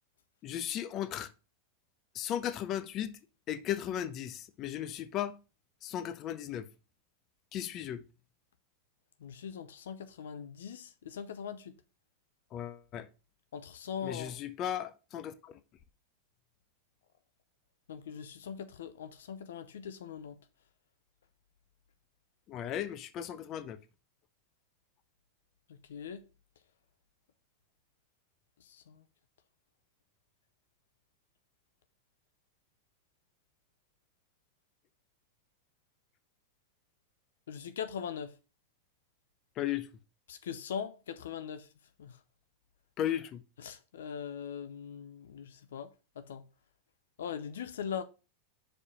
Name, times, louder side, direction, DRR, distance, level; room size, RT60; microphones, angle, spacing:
voice 1, 0.4-1.3 2.1-3.1 3.5-5.4 5.8-6.7 7.5-8.0 12.5-13.1 14.0-15.6 22.5-23.8 39.6-39.9 43.0-43.4, left 10 dB, 40° left, 0.7 m, -36 dB
voice 2, 9.2-11.7 13.5-14.4 17.9-20.4 25.9-26.2 28.7-28.9 37.5-38.3 40.3-41.7 42.0-42.2 43.6-46.4 47.2-48.0, left 7 dB, 80° left, 0.5 m, -41 dB
5.0 x 4.5 x 5.4 m
hypercardioid pair, 105°, 0 cm